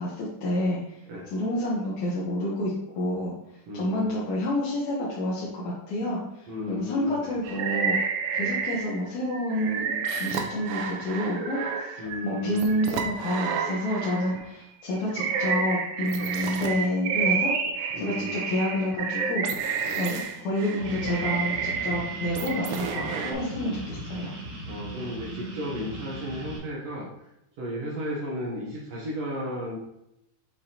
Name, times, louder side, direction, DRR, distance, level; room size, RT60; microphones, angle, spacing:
voice 1, 0.0-1.0 1.3-3.3 3.7-8.0 8.3-9.9 10.2-17.5 18.0-19.5 19.9-24.3, left 1 dB, 65° left, -7 dB, 2.4 m, -29 dB
voice 2, 3.7-4.1 6.5-7.3 8.4-8.5 12.0-12.7 16.2-16.4 17.9-18.4 19.9-20.0 23.8-24.0 24.7-27.1 27.6-29.8, left 1 dB, 65° right, -4 dB, 1.6 m, -34 dB
sound 1, 7.5-9.0 9.3-14.5 14.9-23.3, right 6 dB, 90° right, 2.4 m, -30 dB
sound 2, 20.8-26.6, right 1 dB, 50° right, 1.2 m, -38 dB
7.1 x 4.8 x 2.8 m, 0.83 s
omnidirectional pair, 3.9 m